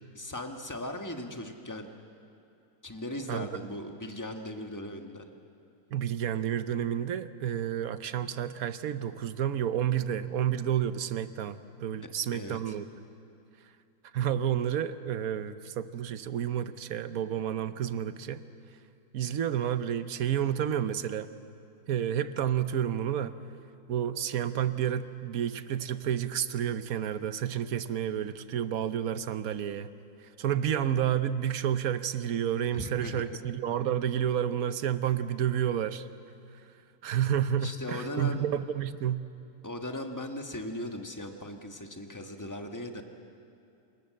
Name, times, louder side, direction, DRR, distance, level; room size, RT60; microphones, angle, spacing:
voice 1, 0.1-1.9 2.8-5.3 12.3-12.7 32.7-33.4 37.6-38.5 39.6-43.0, left 1 dB, 15° left, 4 dB, 1.4 m, -38 dB
voice 2, 5.9-12.9 14.1-18.4 19.1-21.3 21.9-23.4 23.9-29.9 30.4-36.1 37.0-39.2, right 9 dB, 70° right, 12 dB, 1.2 m, -30 dB
27.5 x 19.0 x 7.6 m, 2.6 s
omnidirectional pair, 1.6 m